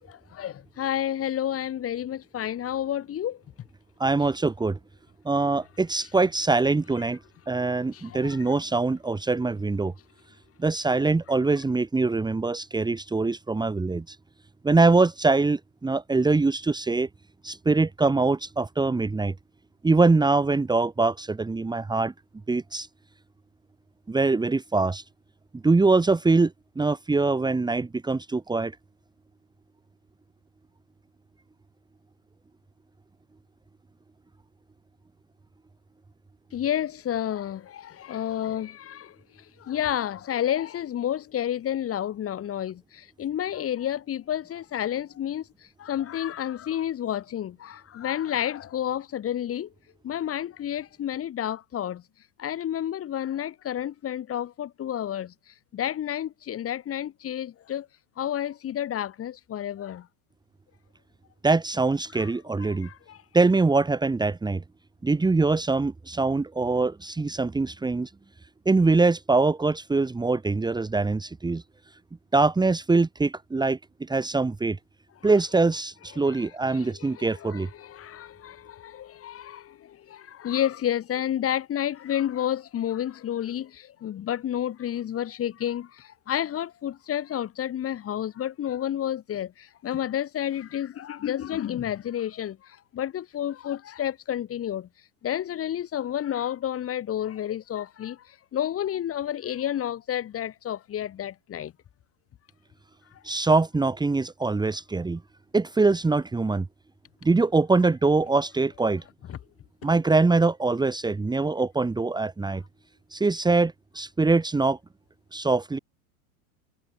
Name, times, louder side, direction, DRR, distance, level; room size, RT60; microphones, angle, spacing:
voice 1, 0.3-3.4 7.9-8.4 36.5-39.2 39.6-45.5 45.8-49.7 50.0-52.0 52.4-55.3 55.7-57.9 58.2-60.1 62.1-62.3 62.6-63.2 75.2-75.3 76.1-94.9 95.2-98.2 98.5-101.7 109.3-109.4, left 10 dB, 30° left, 5.7 m, -30 dB
voice 2, 4.0-4.8 5.2-7.2 7.5-9.9 10.6-14.2 14.6-17.1 17.4-19.3 19.8-22.1 22.5-22.9 24.1-25.0 25.5-28.7 61.4-62.9 63.3-64.6 65.0-68.1 68.7-71.6 72.3-74.8 75.2-77.7 103.2-105.2 105.5-106.7 107.2-109.0 109.8-112.6 113.1-114.8 115.3-115.8, right 3 dB, 10° right, 2.5 m, -23 dB
hypercardioid pair, 110°, 43 cm